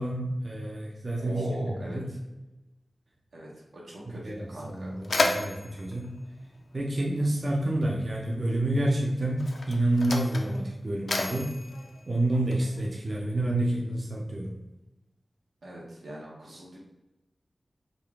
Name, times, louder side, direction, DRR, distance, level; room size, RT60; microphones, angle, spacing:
voice 1, 0.0-2.1 4.2-6.1 6.7-11.5 12.1-14.6, right 1 dB, 40° right, -2 dB, 0.5 m, -28 dB
voice 2, 1.2-2.2 3.3-4.9 15.6-16.8, right 1 dB, 85° right, -4 dB, 1.0 m, -40 dB
Mechanisms, 4.1-4.2 4.6-7.3 8.3-8.5 9.3-12.9, left 2 dB, 70° left, 0.4 m, -33 dB
3.9 x 2.4 x 3.4 m, 1.0 s
wide cardioid pair, 110°, 0 cm